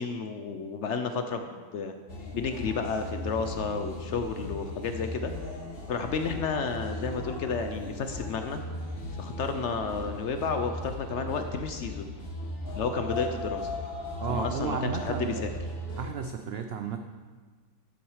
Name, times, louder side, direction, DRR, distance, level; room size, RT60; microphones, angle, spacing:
voice 1, 0.0-1.9 2.3-5.3 5.9-8.6 9.2-12.1 12.8-13.6 14.3-15.5, left 5 dB, 65° left, 7 dB, 0.8 m, -31 dB
sound 1, 2.1-16.1, left 1 dB, 40° left, 1.2 m, -37 dB
voice 2, 14.2-15.4 16.0-17.0, right 6 dB, 80° right, 6 dB, 0.5 m, -33 dB
12.0 x 6.0 x 4.8 m, 1.5 s
omnidirectional pair, 1.6 m